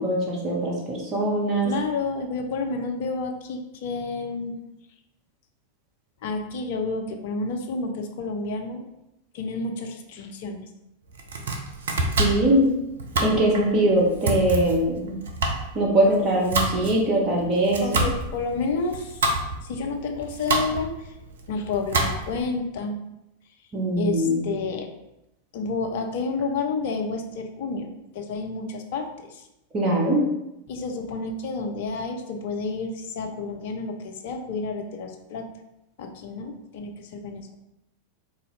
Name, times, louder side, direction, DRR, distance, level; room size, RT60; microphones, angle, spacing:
voice 1, 0.0-1.7 12.2-12.7 13.2-15.2 15.7-18.0 23.7-24.5 29.7-30.3, right 1 dB, 30° right, -2 dB, 0.7 m, -22 dB
voice 2, 1.6-4.6 6.2-8.8 9.3-10.6 17.8-21.1 21.5-22.9 24.0-24.9 25.5-27.9 28.1-29.5 30.7-35.4 36.0-37.6, left 4 dB, 50° left, 4 dB, 0.4 m, -30 dB
Domestic sounds home sounds, 11.1-22.5, right 2 dB, 65° right, 0.5 m, -28 dB
3.8 x 2.4 x 3.2 m, 0.89 s
figure-of-eight pair, 90°, 0 cm